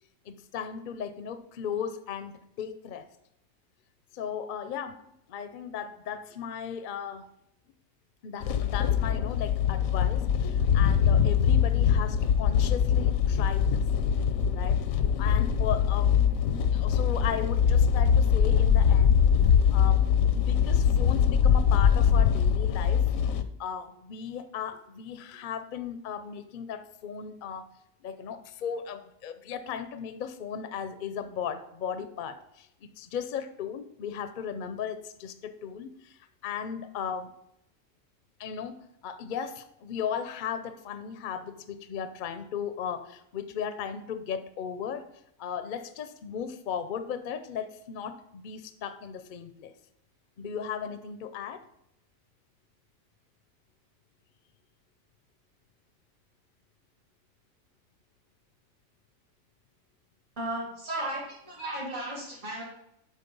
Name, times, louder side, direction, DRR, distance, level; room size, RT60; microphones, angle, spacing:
voice 1, 0.2-3.1 4.1-5.0 5.3-7.3 8.2-13.8 14.5-14.8 15.2-16.2 16.7-19.2 19.7-23.1 23.6-27.7 28.0-37.3 38.4-45.1 45.4-49.7 50.4-51.6, left 7 dB, 50° left, 11 dB, 0.6 m, -36 dB
sound 1, 8.4-23.4, left 8 dB, 80° left, 1.0 m, -23 dB
voice 2, 60.4-62.6, right 1 dB, 60° right, -8 dB, 3.1 m, -35 dB
8.3 x 3.8 x 5.3 m, 0.78 s
omnidirectional pair, 1.4 m